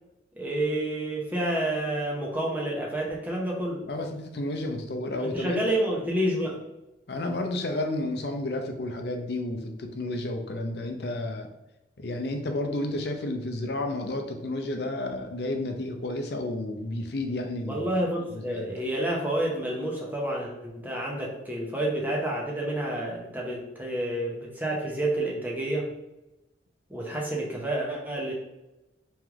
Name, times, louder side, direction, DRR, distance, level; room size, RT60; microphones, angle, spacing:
voice 1, 0.4-3.8 5.2-6.6 17.7-25.9 26.9-28.3, right 1 dB, 10° right, -2 dB, 0.8 m, -29 dB
voice 2, 3.9-5.7 7.1-11.5 12.0-17.8 18.3-18.7, left 1 dB, 60° left, 4 dB, 0.6 m, -31 dB
3.3 x 3.1 x 3.5 m, 0.95 s
head